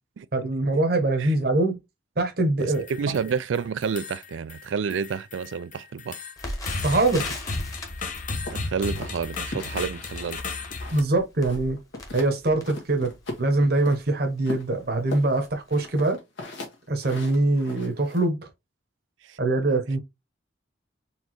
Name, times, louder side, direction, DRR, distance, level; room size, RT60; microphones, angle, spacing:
voice 1, 0.3-1.8 2.2-2.8 6.8-7.2 10.9-11.8 12.1-13.1 13.4-16.2 16.9-18.4 19.4-20.0, right 2 dB, 55° right, 1.0 m, -23 dB
sound 1, 2.6-3.4 3.8-4.6 4.9-11.0, left 3 dB, 45° left, 0.8 m, -34 dB
voice 2, 2.6-6.2 8.4-10.4 19.2-19.4, right 6 dB, 85° right, 0.4 m, -30 dB
Crackle, 6.4-13.3 13.9-14.0 14.4-14.6 15.2-15.4 15.7-15.8, left 1 dB, 20° left, 1.1 m, -40 dB
sound 2, 8.4-11.1 11.4-12.3 12.6-14.0 14.4-18.3, left 2 dB, 80° left, 1.6 m, -39 dB
4.4 x 3.4 x 3.0 m
head